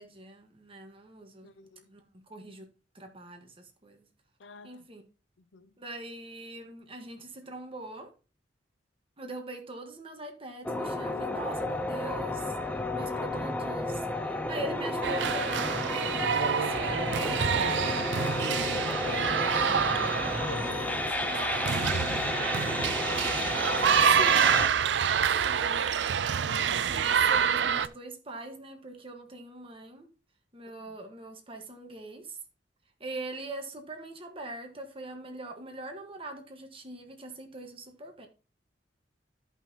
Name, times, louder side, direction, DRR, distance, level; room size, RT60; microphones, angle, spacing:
voice 1, 0.0-1.5 1.9-2.7 2.9-4.0 4.6-5.1 5.8-8.1 9.2-18.4 23.2-24.8 25.3-25.9 26.6-30.1 30.5-32.4 33.0-38.3, right 1 dB, 30° right, 1.4 m, -42 dB
voice 2, 1.4-1.9 4.4-4.9 5.5-5.7 17.3-18.1 18.6-22.2 26.4-27.3 30.7-31.0, left 4 dB, 90° left, 0.6 m, -48 dB
sound 1, 10.6-24.7, left 2 dB, 10° left, 0.5 m, -32 dB
sound 2, 15.0-27.9, right 7 dB, 70° right, 0.4 m, -27 dB
13.5 x 5.6 x 2.8 m
head